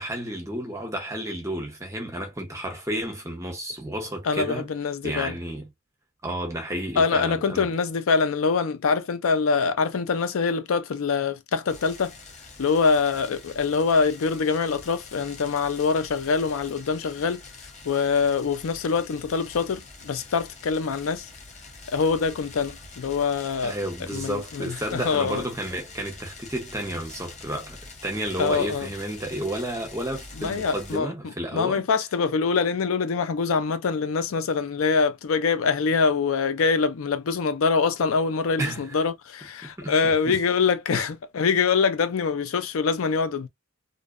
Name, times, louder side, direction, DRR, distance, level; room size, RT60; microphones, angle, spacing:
voice 1, 0.0-4.7 5.0-5.7 6.2-7.7 23.6-31.9 38.6-39.0 39.6-40.4 40.9-41.0, right 1 dB, 15° right, 0.7 m, -32 dB
voice 2, 4.2-5.3 7.0-12.1 12.6-17.4 17.8-21.3 21.9-23.8 24.1-25.4 28.4-28.9 30.4-31.1 31.5-43.5, left 5 dB, 80° left, 0.4 m, -24 dB
sound 1, 11.7-31.0, left 3 dB, 35° left, 0.7 m, -45 dB
2.6 x 2.0 x 2.4 m
head